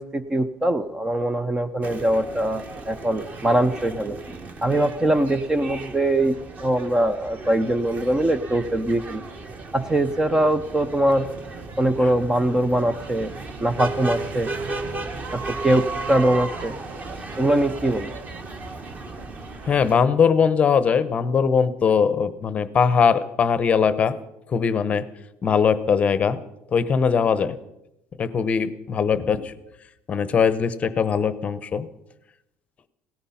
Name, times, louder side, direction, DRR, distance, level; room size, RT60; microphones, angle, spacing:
voice 1, 0.0-6.4 6.6-9.2 9.7-11.3 11.8-13.3 13.6-14.5 15.3-16.8 17.4-18.1, right 1 dB, 10° right, 11 dB, 0.5 m, -22 dB
sound 1, 1.8-20.0, right 3 dB, 25° right, 1.4 m, -35 dB
voice 2, 19.7-24.2 24.5-25.0 25.4-26.4 26.7-27.6 28.2-29.5 30.1-31.9, left 6 dB, 25° left, 15 dB, 0.8 m, -20 dB
17.5 x 14.0 x 5.7 m, 0.86 s
cardioid pair, 170°, 6 cm